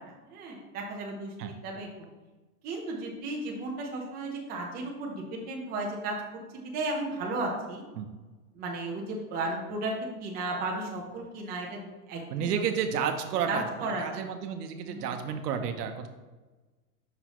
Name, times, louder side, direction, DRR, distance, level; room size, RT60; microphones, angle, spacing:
voice 1, 0.0-1.9 2.6-6.1 6.5-7.8 8.5-11.8 12.1-12.5 13.5-14.2 14.8-15.2, right 2 dB, 20° right, -1 dB, 0.8 m, -34 dB
voice 2, 12.3-16.1, right 7 dB, 85° right, 7 dB, 0.9 m, -31 dB
5.9 x 5.7 x 3.0 m, 1.2 s
supercardioid pair, 160°, 46 cm